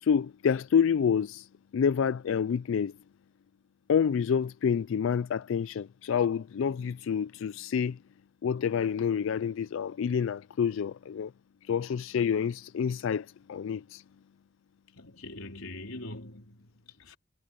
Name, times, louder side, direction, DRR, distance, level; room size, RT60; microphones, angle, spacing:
voice 1, 0.0-1.5 1.7-2.9 3.9-8.0 8.4-11.3 11.6-14.0, left 7 dB, 70° left, 0.3 m, -28 dB
voice 2, 15.0-17.2, left 2 dB, 90° left, 4.1 m, -43 dB
head